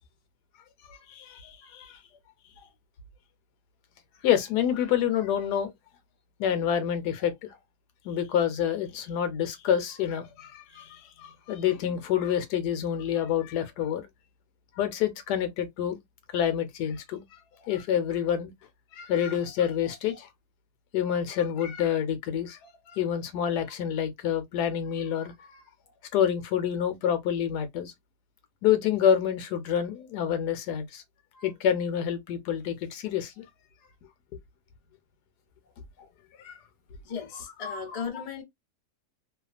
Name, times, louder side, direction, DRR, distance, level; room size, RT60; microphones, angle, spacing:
voice 1, 0.9-2.0 4.2-5.7 6.4-7.3 8.0-14.1 14.8-16.0 16.3-17.2 17.6-18.5 18.9-20.3 20.9-25.6 26.1-27.9 28.6-31.0 31.4-33.4 36.4-36.6 37.3-38.2, left 9 dB, 70° left, 1.1 m, -28 dB
voice 2, 37.0-38.4, left 6 dB, 55° left, 0.4 m, -36 dB
2.8 x 2.3 x 2.4 m
omnidirectional pair, 1.9 m